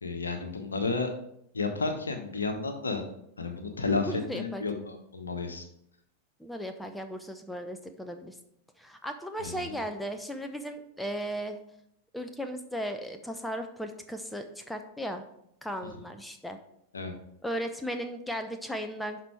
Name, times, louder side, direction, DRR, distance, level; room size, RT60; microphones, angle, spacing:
voice 1, 0.0-1.1 1.5-3.0 3.4-5.7 9.4-9.7 16.9-17.1, left 3 dB, 75° left, 5 dB, 1.2 m, -32 dB
voice 2, 4.0-4.6 6.4-8.3 8.8-11.6 12.1-15.3 15.6-16.6 17.4-19.2, equal, 5° left, 7 dB, 0.8 m, -36 dB
11.5 x 4.4 x 4.7 m, 0.75 s
figure-of-eight pair, 90°, 0 cm